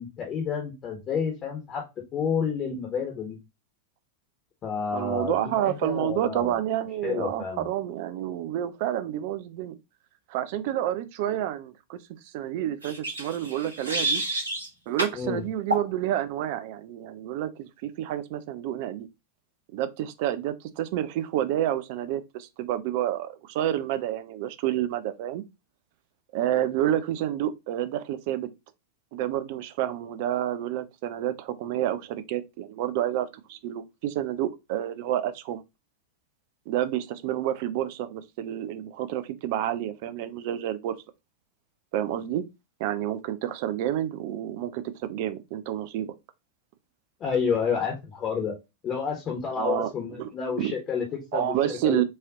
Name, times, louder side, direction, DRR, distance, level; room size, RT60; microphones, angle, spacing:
voice 1, 0.0-1.8 2.1-3.4 4.6-6.5 7.0-7.6 15.1-15.4 47.2-48.5 48.8-52.0, left 6 dB, 30° left, 1.2 m, -30 dB
voice 2, 4.9-9.8 10.3-12.0 12.3-14.2 14.9-19.1 19.7-25.4 26.3-28.5 29.1-35.6 36.7-41.0 41.9-42.4 42.8-46.1 49.6-49.9 50.2-50.3 50.6-50.8 51.3-52.0, right 12 dB, 50° right, 0.5 m, -29 dB
sound 1, 12.8-14.7 15.0-15.2 15.7-15.9, right 2 dB, 75° right, 1.4 m, -29 dB
4.7 x 2.9 x 2.7 m
figure-of-eight pair, 90°, 0 cm